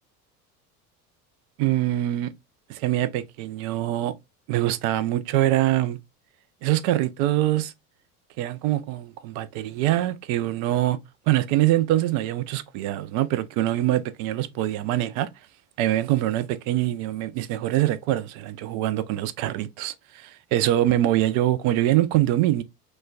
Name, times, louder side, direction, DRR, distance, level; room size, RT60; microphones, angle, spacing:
voice 1, 1.6-2.3 2.7-4.1 4.5-6.0 6.6-7.7 8.4-11.0 11.3-15.3 15.8-22.6, right 14 dB, 45° right, 0.5 m, -24 dB
6.1 x 2.2 x 2.2 m
figure-of-eight pair, 65°, 46 cm